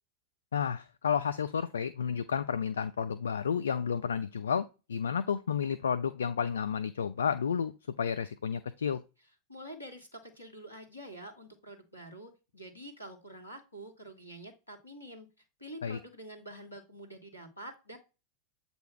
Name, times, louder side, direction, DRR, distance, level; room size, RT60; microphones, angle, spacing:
voice 1, 0.5-7.7 8.0-9.0 15.8-16.0, left 7 dB, 70° left, 0.3 m, -31 dB
voice 2, 9.5-15.3 15.6-18.0, right 1 dB, 85° left, 1.5 m, -47 dB
7.9 x 2.7 x 4.4 m
figure-of-eight pair, 90°, 0 cm